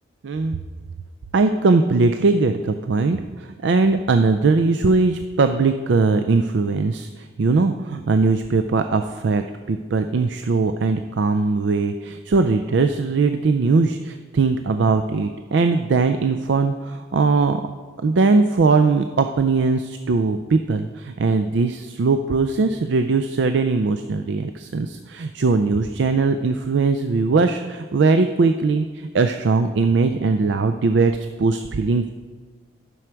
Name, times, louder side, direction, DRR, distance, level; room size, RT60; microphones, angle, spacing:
voice 1, 0.2-0.6 1.3-17.6 18.0-32.1, right 4 dB, 70° right, 8 dB, 0.4 m, -20 dB
11.0 x 6.3 x 4.5 m, 1.5 s
head